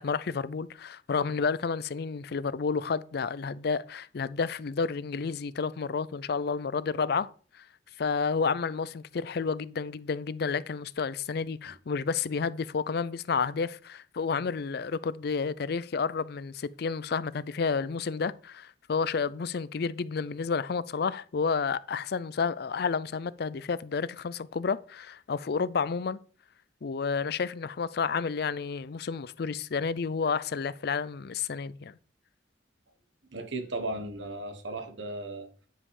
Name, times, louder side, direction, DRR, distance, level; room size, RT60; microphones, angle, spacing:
voice 1, 0.0-7.3 7.5-7.7 8.0-26.2 26.8-32.0, left 5 dB, 55° left, 0.4 m, -30 dB
voice 2, 33.3-35.5, right 2 dB, 80° right, 1.5 m, -36 dB
9.8 x 5.5 x 4.8 m
head